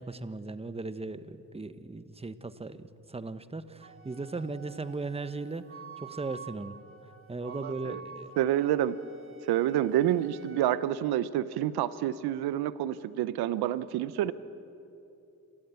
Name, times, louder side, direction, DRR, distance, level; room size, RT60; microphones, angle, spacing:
voice 1, 0.0-6.8 7.3-8.3, right 3 dB, 15° right, 12 dB, 1.0 m, -37 dB
Wind instrument woodwind instrument, 3.8-10.6, right 6 dB, 35° right, 2.1 m, -49 dB
voice 2, 7.4-8.0 8.4-9.0 9.5-14.3, right 12 dB, 85° right, 16 dB, 0.8 m, -28 dB
29.0 x 13.0 x 8.2 m, 2.8 s
cardioid pair, 70°, 37 cm